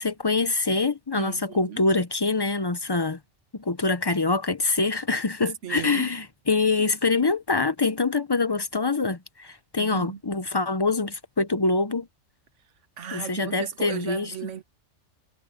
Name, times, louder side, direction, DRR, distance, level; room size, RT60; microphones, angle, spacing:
voice 1, 0.0-3.2 3.5-12.1 13.1-14.3, left 3 dB, 25° left, 0.6 m, -25 dB
voice 2, 1.2-1.9 5.6-6.1 9.8-10.2 13.0-14.6, right 8 dB, 75° right, 1.4 m, -36 dB
omnidirectional pair, 1.3 m